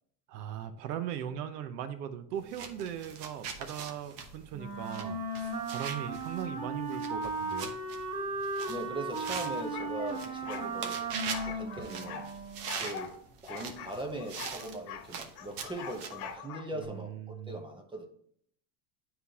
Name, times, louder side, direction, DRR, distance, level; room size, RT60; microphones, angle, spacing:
voice 1, 0.3-7.8 16.7-17.6, right 9 dB, 90° right, 0.9 m, -39 dB
sound 1, 2.4-16.3, right 6 dB, 60° right, 1.1 m, -43 dB
Wind instrument woodwind instrument, 4.5-12.8, right 2 dB, 35° right, 1.8 m, -36 dB
voice 2, 8.7-11.0 11.4-12.3 12.8-13.2 13.4-18.1, right 1 dB, 10° right, 0.8 m, -40 dB
sound 2, 9.7-10.7 11.3-12.3 12.7-13.1 13.5-15.1 15.4-16.9, left 6 dB, 75° left, 1.1 m, -43 dB
9.6 x 3.9 x 2.8 m
supercardioid pair, 135°, 46 cm